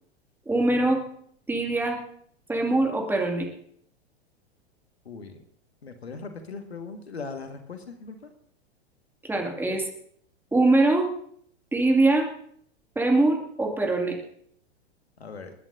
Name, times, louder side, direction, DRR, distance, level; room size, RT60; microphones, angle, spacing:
voice 1, 0.5-1.0 1.5-2.0 2.5-3.5 9.2-9.8 10.5-11.1 11.7-12.3 13.0-14.2, right 2 dB, 5° right, 1 dB, 2.2 m, -22 dB
voice 2, 5.0-5.4 5.8-8.3 15.2-15.5, left 4 dB, 75° left, 7 dB, 1.7 m, -39 dB
28.0 x 10.5 x 2.6 m, 0.65 s
figure-of-eight pair, 100°, 32 cm